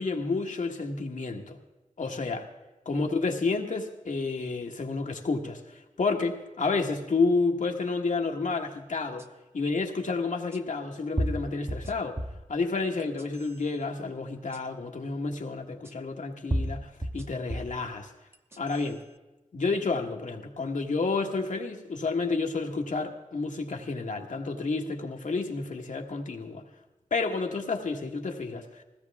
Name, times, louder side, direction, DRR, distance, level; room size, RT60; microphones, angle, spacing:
voice 1, 0.0-1.6 2.0-2.5 2.8-9.2 9.5-12.2 12.5-18.1 18.6-19.0 19.5-26.7 27.1-28.8, left 3 dB, 75° left, 1.5 m, -30 dB
sound 1, 9.2-9.3 10.5-10.6 11.2-12.5 13.0-13.6 14.5-14.6 15.8-15.9 16.5-17.8 18.3-18.9, right 1 dB, 20° right, 0.9 m, -32 dB
20.0 x 16.5 x 3.5 m
cardioid pair, 55°, 13 cm